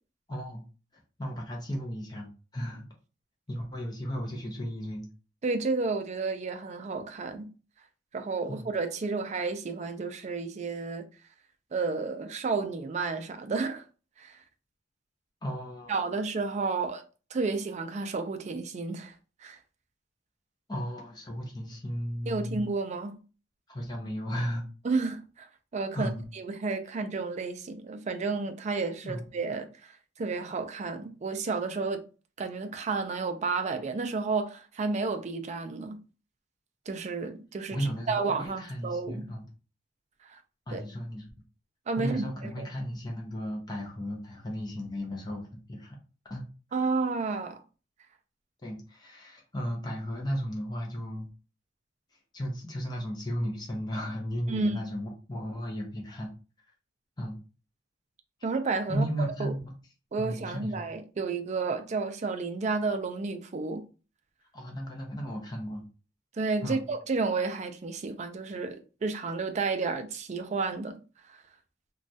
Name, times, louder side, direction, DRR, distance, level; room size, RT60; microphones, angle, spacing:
voice 1, 0.3-0.6 1.2-2.8 3.5-5.1 8.5-8.7 15.4-16.2 20.7-22.7 23.7-24.7 25.9-26.3 29.0-29.2 37.7-39.4 40.7-41.3 42.0-46.0 46.3-46.4 48.6-51.3 52.3-56.3 57.2-57.4 58.9-59.7 60.2-60.9 64.5-65.8 66.6-66.8, equal, 20° left, 0.6 m, -35 dB
voice 2, 5.4-7.5 8.1-11.1 11.7-13.8 14.2-14.3 15.9-17.0 17.3-19.1 19.4-19.6 22.3-23.2 24.8-25.5 25.7-29.9 30.2-32.0 32.4-36.0 36.9-37.8 38.1-39.3 40.3-40.4 40.7-40.8 41.9-42.7 46.7-47.6 54.5-54.8 58.4-59.5 60.1-63.8 66.4-71.0 71.3-71.4, right 4 dB, 35° right, 0.4 m, -31 dB
3.0 x 2.3 x 2.7 m
head